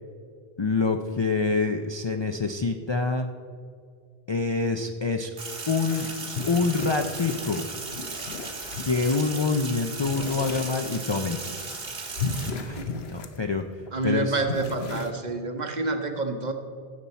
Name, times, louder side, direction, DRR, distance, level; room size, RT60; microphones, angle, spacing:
voice 1, 0.6-3.3 4.3-5.3 5.7-6.1 6.5-7.6 8.8-11.4 12.5-13.6 14.0-14.4, left 4 dB, 40° left, 5 dB, 0.4 m, -26 dB
Sink (filling or washing), 5.4-12.5, right 4 dB, 65° right, 1.5 m, -36 dB
sound 1, 5.9-9.3 10.0-11.1 11.4-11.8 12.1-13.9 14.2-15.1, left 4 dB, 80° left, 1.1 m, -35 dB
voice 2, 12.8-13.1 13.9-16.5, right 3 dB, 45° right, 6 dB, 0.9 m, -28 dB
16.0 x 7.0 x 4.2 m, 2.2 s
omnidirectional pair, 1.0 m